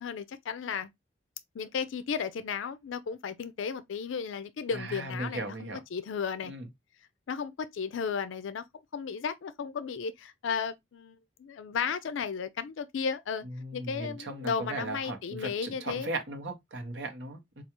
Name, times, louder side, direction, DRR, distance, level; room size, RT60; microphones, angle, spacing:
voice 1, 0.0-0.9 1.5-6.5 7.3-8.6 8.9-13.4 13.7-16.1, left 6 dB, 80° left, 0.4 m, -34 dB
voice 2, 4.7-5.8 6.4-6.7 13.4-17.6, right 2 dB, 65° right, 0.9 m, -37 dB
4.6 x 2.4 x 2.9 m
head